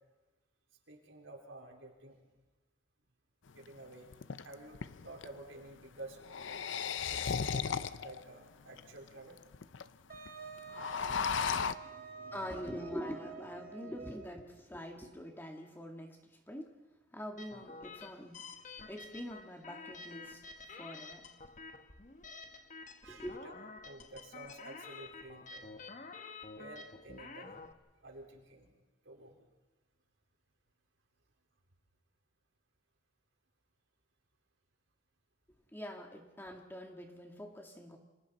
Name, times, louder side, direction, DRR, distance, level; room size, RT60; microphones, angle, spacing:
voice 1, 0.9-2.2 3.5-4.1 4.4-6.2 7.1-9.4 10.9-12.8 23.0-23.5 23.8-25.8 26.5-27.6 28.0-28.7 29.0-29.4, right 2 dB, 75° right, 0 dB, 4.3 m, -52 dB
sound 1, 3.5-3.6 4.1-5.3 6.2-8.2 8.8-8.9 9.1-9.2 9.4-9.8 10.1-10.3 10.6-11.7, left 6 dB, 70° left, 0.7 m, -35 dB
Wind instrument woodwind instrument, 10.1-14.5, right 6 dB, 45° right, 2.4 m, -49 dB
voice 2, 12.3-16.7 17.1-20.4 20.7-21.3 23.1-23.4 35.7-38.0, equal, 10° left, 2 dB, 2.0 m, -45 dB
sound 2, 17.4-27.7, left 4 dB, 40° left, 1.1 m, -50 dB
29.0 x 26.0 x 4.2 m, 1.2 s
head